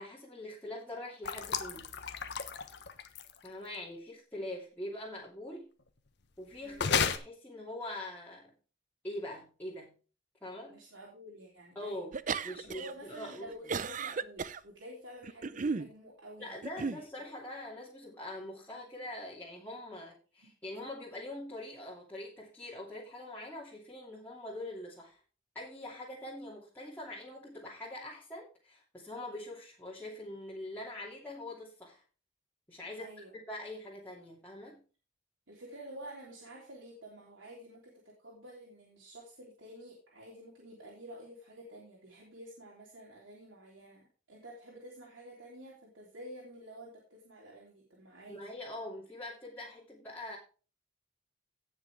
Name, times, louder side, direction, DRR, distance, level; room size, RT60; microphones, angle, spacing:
voice 1, 0.0-1.9 3.4-5.7 6.4-8.5 9.0-9.9 10.4-10.8 11.7-12.2 12.4-13.7 16.4-25.2 25.5-32.0 32.7-33.1 33.5-34.8 48.3-50.4, left 1 dB, 10° left, -7 dB, 2.7 m, -43 dB
sound 1, 1.2-3.5 6.8-7.2, left 6 dB, 65° left, 1.2 m, -32 dB
voice 2, 10.7-12.1 12.7-17.0 20.4-20.5 33.0-33.3 35.5-48.4, right 1 dB, 75° right, -4 dB, 3.4 m, -50 dB
sound 2, 12.1-12.9 13.2-14.6 15.2-15.9 16.6-17.0, right 5 dB, 40° right, 0.6 m, -35 dB
17.5 x 6.0 x 3.4 m, 0.36 s
head